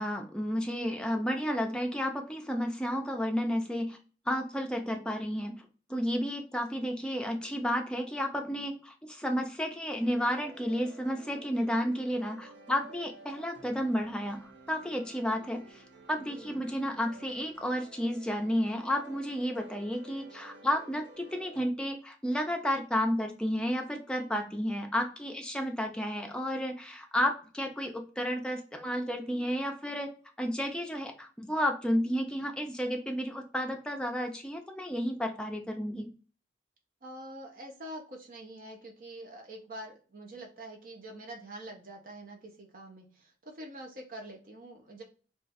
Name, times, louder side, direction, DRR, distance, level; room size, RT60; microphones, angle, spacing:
voice 1, 0.0-4.0 4.3-5.6 5.9-15.8 16.1-30.1 30.4-36.1, equal, 5° left, 3 dB, 0.4 m, -32 dB
sound 1, 9.9-21.7, right 2 dB, 85° right, 0.8 m, -52 dB
voice 2, 16.1-16.7 37.0-45.0, right 1 dB, 50° right, 1 dB, 0.6 m, -45 dB
2.4 x 2.3 x 3.9 m, 0.37 s
head